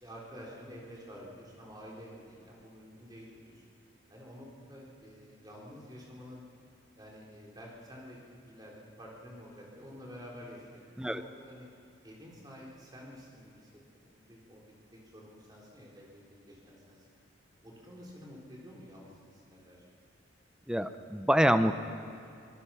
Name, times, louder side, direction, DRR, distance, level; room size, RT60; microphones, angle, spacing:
voice 1, 0.0-3.6 4.1-6.4 7.0-11.7 12.0-13.7 14.1-14.6 14.9-17.1 17.6-19.9, equal, 20° right, -4 dB, 3.9 m, -49 dB
voice 2, 20.7-21.7, equal, 5° right, 9 dB, 0.6 m, -26 dB
24.5 x 18.5 x 5.8 m, 2.5 s
head